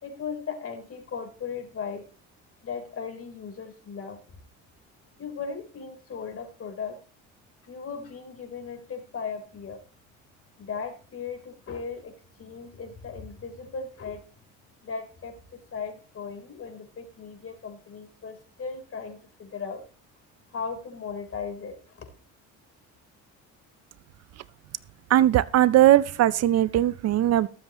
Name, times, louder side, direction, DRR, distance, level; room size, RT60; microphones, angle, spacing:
voice 1, 0.0-2.1 2.6-4.2 5.2-7.0 7.6-9.8 10.6-12.1 12.4-14.2 14.8-19.8 20.5-22.1, left 5 dB, 45° left, 4 dB, 3.9 m, -37 dB
voice 2, 25.1-27.5, right 13 dB, 50° right, 17 dB, 0.6 m, -19 dB
21.5 x 7.5 x 3.0 m, 0.38 s
supercardioid pair, 90°, 32 cm